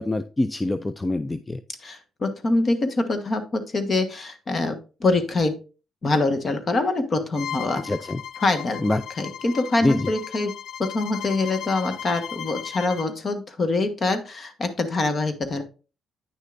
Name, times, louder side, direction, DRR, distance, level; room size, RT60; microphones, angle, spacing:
voice 1, 0.0-1.6 7.7-8.2 8.8-9.0 9.8-10.1, left 2 dB, 15° left, 12 dB, 0.4 m, -25 dB
voice 2, 1.8-4.7 5.0-5.5 6.0-7.8 8.4-8.8 9.2-10.5 10.8-15.6, left 2 dB, 40° left, 9 dB, 1.3 m, -24 dB
Bowed string instrument, 7.3-13.1, left 10 dB, 85° left, 0.4 m, -36 dB
9.3 x 6.4 x 2.5 m, 0.33 s
cardioid pair, 90°, 0 cm